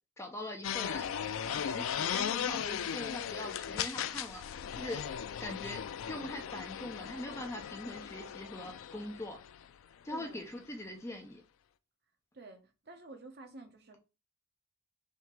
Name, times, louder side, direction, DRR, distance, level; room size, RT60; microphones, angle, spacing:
voice 1, 0.2-1.1 1.5-4.4 4.7-5.0 5.4-9.4 10.0-11.4, left 1 dB, 15° left, 0.5 m, -42 dB
sound 1, 0.6-9.7, left 8 dB, 75° left, 0.3 m, -37 dB
voice 2, 10.1-10.5 12.3-14.0, right 2 dB, 50° right, 0.8 m, -50 dB
3.5 x 2.8 x 4.3 m
head